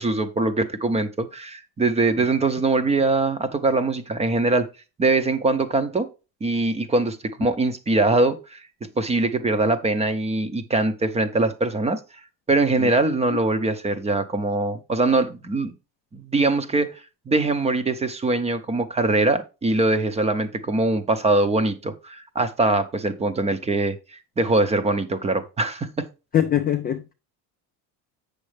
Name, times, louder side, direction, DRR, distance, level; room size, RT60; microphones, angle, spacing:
voice 1, 0.0-4.7 5.0-6.1 6.4-8.6 9.0-12.0 12.5-15.7 16.1-16.9 17.3-26.1, right 2 dB, 15° right, 0.7 m, -22 dB
voice 2, 26.3-27.1, left 10 dB, 25° left, 0.3 m, -23 dB
8.2 x 6.5 x 3.2 m
cardioid pair, 155°, 43 cm